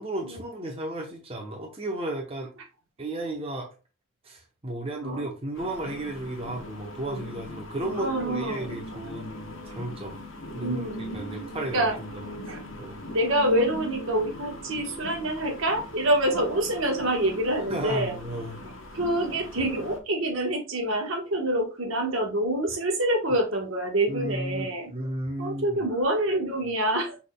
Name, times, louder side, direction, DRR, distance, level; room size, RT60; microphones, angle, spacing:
voice 1, 0.0-2.5 3.0-3.7 4.2-10.2 10.5-11.9 12.1-12.4 12.8-13.0 17.7-18.6 24.1-25.9, right 1 dB, 25° right, 1 dB, 0.8 m, -34 dB
voice 2, 5.0-5.3 8.0-8.7 10.6-11.2 11.6-12.0 12.5-12.6 13.1-18.1 18.9-24.9 25.4-27.2, right 1 dB, 65° right, 3 dB, 1.2 m, -26 dB
sound 1, 5.5-20.0, left 1 dB, 65° left, 1.0 m, -40 dB
6.2 x 3.5 x 2.2 m, 0.31 s
head